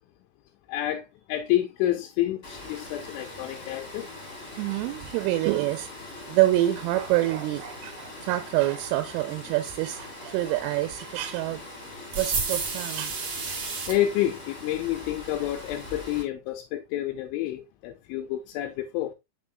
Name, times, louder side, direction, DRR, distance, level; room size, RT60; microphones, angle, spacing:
voice 1, 0.7-4.1 13.9-19.1, left 13 dB, 85° left, 2.7 m, -29 dB
Water, 2.4-16.2, left 2 dB, 40° left, 1.0 m, -42 dB
voice 2, 4.6-11.8 12.2-13.1 13.4-13.6, right 15 dB, 85° right, 3.0 m, -27 dB
sound 1, 12.1-14.0, right 4 dB, 65° right, 1.6 m, -30 dB
6.8 x 6.0 x 2.3 m
omnidirectional pair, 6.0 m